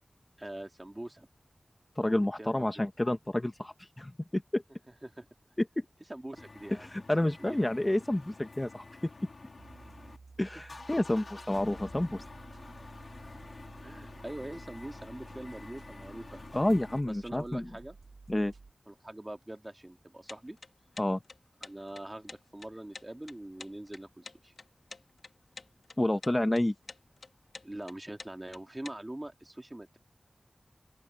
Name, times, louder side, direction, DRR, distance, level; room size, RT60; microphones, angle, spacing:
voice 1, 0.4-1.3 2.4-2.9 5.0-5.3 6.1-6.9 7.4-7.7 13.8-16.5 17.0-18.0 18.9-20.6 21.6-24.5 27.6-30.0, right 1 dB, 25° right, 2.5 m, -43 dB
voice 2, 2.0-4.6 5.8-5.9 6.9-8.8 10.4-12.2 16.5-17.7 18.3-18.5 21.0-21.2 26.0-26.7, left 1 dB, 25° left, 1.3 m, -29 dB
sound 1, 6.4-10.2 10.5-17.0, left 3 dB, 65° left, 2.7 m, -49 dB
sound 2, 9.6-18.7, right 4 dB, 90° right, 2.9 m, -53 dB
sound 3, 20.3-29.0, left 4 dB, 90° left, 1.9 m, -48 dB
open air
wide cardioid pair, 60°, 0 cm